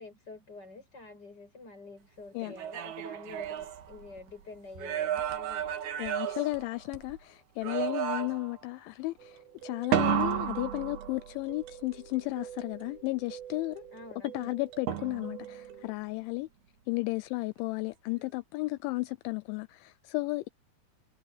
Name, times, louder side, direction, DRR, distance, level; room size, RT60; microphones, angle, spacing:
voice 1, 0.0-5.7 13.9-14.6, left 3 dB, 20° left, 7.7 m, -48 dB
sound 1, 2.4-4.3 4.8-7.2 7.6-8.6 9.9-11.5 14.9-15.5, right 10 dB, 65° right, 3.3 m, -32 dB
voice 2, 6.0-13.8 14.3-16.5 16.9-20.5, left 23 dB, 85° left, 2.9 m, -34 dB
sound 2, 9.2-15.9, right 10 dB, 85° right, 4.5 m, -47 dB
omnidirectional pair, 5.5 m